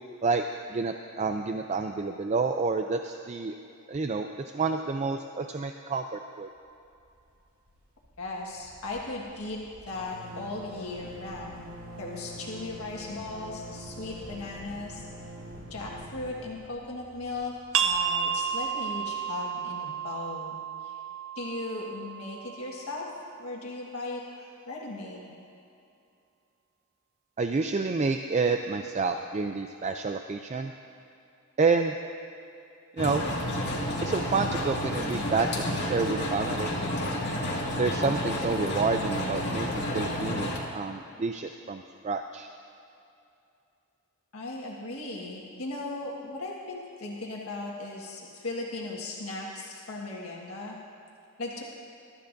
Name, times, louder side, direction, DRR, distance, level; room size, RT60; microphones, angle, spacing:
voice 1, 0.7-3.5 3.9-4.3 4.5-6.5 27.4-30.7 31.6-31.9 33.0-33.2 34.0-36.9 37.8-42.5, right 4 dB, 30° right, 6 dB, 0.4 m, -29 dB
sound 1, 6.9-7.4 7.7-7.8 8.0-18.7, right 1 dB, 90° right, 2.4 m, -45 dB
voice 2, 8.2-11.7 12.0-15.0 15.7-17.5 17.8-21.0 21.3-23.1 23.4-25.2 44.3-50.8 51.4-51.6, left 2 dB, 85° left, -3 dB, 1.6 m, -37 dB
sound 2, 17.7-23.1, right 8 dB, 70° right, 0.7 m, -32 dB
sound 3, 33.0-40.6, left 1 dB, 50° left, 1.9 m, -30 dB
22.5 x 12.5 x 2.6 m, 2.7 s
head